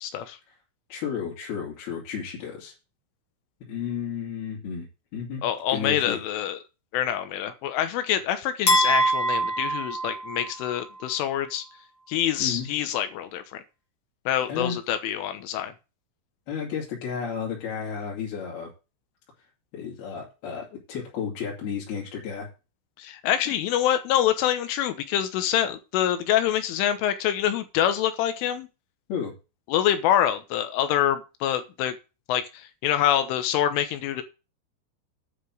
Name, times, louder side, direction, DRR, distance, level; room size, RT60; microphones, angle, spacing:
voice 1, 0.0-0.4 5.4-6.6 6.9-11.7 12.1-13.6 14.3-15.7 23.0-28.7 29.7-32.0 32.3-34.2, left 11 dB, 75° left, 10 dB, 3.5 m, -26 dB
voice 2, 0.9-2.7 3.7-5.4 5.7-6.2 12.4-12.7 14.5-14.8 16.5-18.7 19.7-22.5 23.5-23.6 29.1-29.3, left 7 dB, 55° left, -4 dB, 4.3 m, -32 dB
sound 1, 8.7-10.8, right 1 dB, 35° left, 2.6 m, -24 dB
9.8 x 6.2 x 7.8 m, 0.29 s
omnidirectional pair, 5.9 m